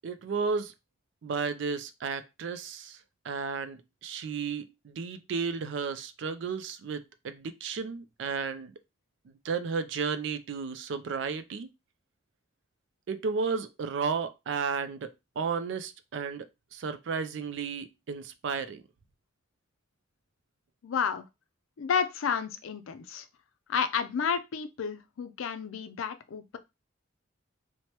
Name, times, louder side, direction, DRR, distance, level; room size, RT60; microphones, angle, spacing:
voice 1, 0.0-0.7 1.2-3.0 3.2-8.7 9.4-11.7 13.1-18.8, right 5 dB, 60° right, 0.3 m, -33 dB
voice 2, 20.8-21.2 21.8-23.2 23.7-26.6, left 6 dB, 80° left, 0.4 m, -31 dB
3.1 x 2.1 x 2.8 m
head